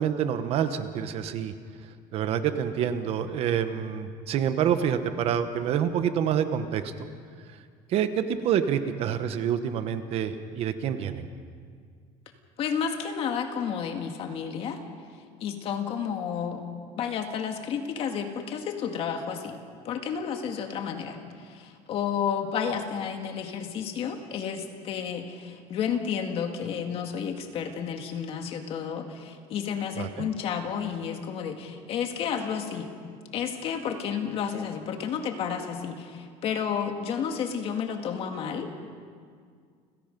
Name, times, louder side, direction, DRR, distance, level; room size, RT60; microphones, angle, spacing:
voice 1, 0.0-1.5 2.1-7.1 7.9-11.3 30.0-30.3, right 8 dB, 50° right, 10 dB, 1.1 m, -27 dB
voice 2, 12.6-14.8 15.4-16.6 17.0-19.6 19.8-32.9 33.3-38.8, left 7 dB, 45° left, 5 dB, 1.9 m, -31 dB
29.5 x 16.5 x 5.3 m, 2.1 s
cardioid pair, 170°, 13 cm